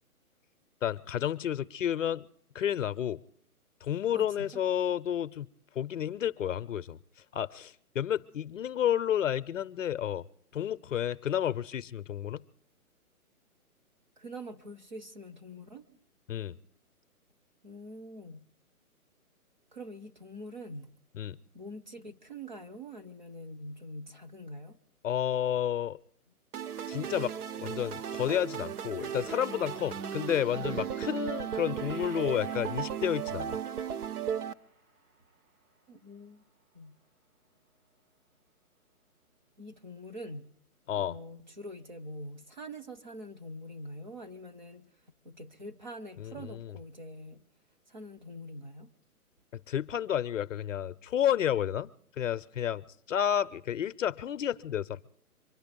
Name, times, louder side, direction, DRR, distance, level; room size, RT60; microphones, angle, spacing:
voice 1, 0.8-2.2 2.5-3.2 3.8-5.5 5.8-7.0 7.3-10.2 10.5-12.4 16.3-16.6 21.1-21.4 25.0-26.0 26.9-27.3 27.6-33.6 40.9-41.1 46.2-46.7 49.7-51.9 52.2-52.8 53.1-55.0, left 10 dB, 60° left, 16 dB, 0.5 m, -31 dB
voice 2, 4.1-4.6 14.2-16.0 17.6-18.5 19.7-20.9 21.5-24.8 35.9-36.4 36.7-37.0 39.6-40.5 40.9-44.9 45.2-47.4 47.9-48.9, equal, 30° right, 8 dB, 0.6 m, -44 dB
sound 1, 26.5-34.5, right 8 dB, 85° right, 0.7 m, -36 dB
Gong, 31.8-39.4 39.8-39.9, right 3 dB, 70° right, 4.5 m, -61 dB
24.5 x 10.5 x 5.2 m, 0.63 s
hypercardioid pair, 160°, 45 cm